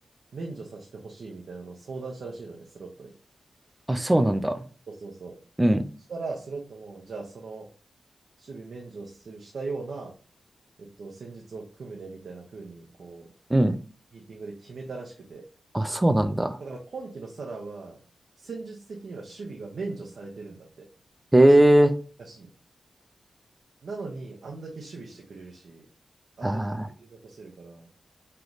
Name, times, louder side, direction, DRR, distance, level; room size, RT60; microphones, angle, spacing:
voice 1, 0.3-3.1 4.9-5.3 6.1-7.7 8.4-10.1 10.8-13.3 14.1-15.5 16.6-18.0 18.4-20.9 22.2-22.5 23.8-25.9 26.4-26.6 27.0-27.9, right 3 dB, 55° right, 0.7 m, -39 dB
voice 2, 3.9-4.6 5.6-5.8 13.5-13.8 15.7-16.6 21.3-21.9 26.4-26.9, right 1 dB, 10° right, 0.3 m, -19 dB
3.9 x 3.3 x 3.0 m
wide cardioid pair, 170°, 0 cm